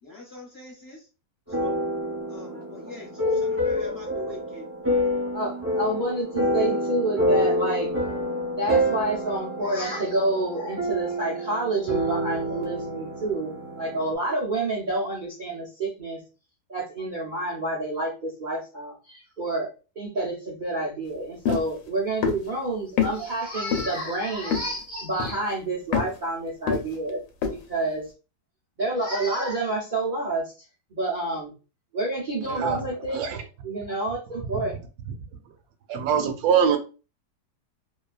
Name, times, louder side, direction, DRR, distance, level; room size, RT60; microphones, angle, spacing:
voice 1, 0.0-1.1 1.5-1.8 2.3-4.7 5.0-5.1, left 3 dB, 45° left, -6 dB, 1.1 m, -42 dB
sound 1, 1.5-14.1, equal, 15° right, 0.6 m, -27 dB
voice 2, 3.2-3.9 5.3-7.9 8.6-16.2 16.7-19.7 20.0-27.2 27.5-28.0 28.8-30.6 30.9-31.5 31.9-33.3 33.6-34.7, right 2 dB, 90° right, -5 dB, 0.4 m, -29 dB
sound 2, 21.5-21.7 22.2-22.5 23.0-23.1 23.7-24.0 24.5-24.8 25.2-25.5 25.9-26.2 26.7-27.1 27.4-27.6, left 7 dB, 90° left, 1.3 m, -25 dB
voice 3, 32.5-32.8 33.1-33.4 34.5-34.6 35.9-36.8, right 7 dB, 70° right, 7 dB, 1.0 m, -23 dB
2.7 x 2.3 x 2.3 m, 0.33 s
omnidirectional pair, 1.8 m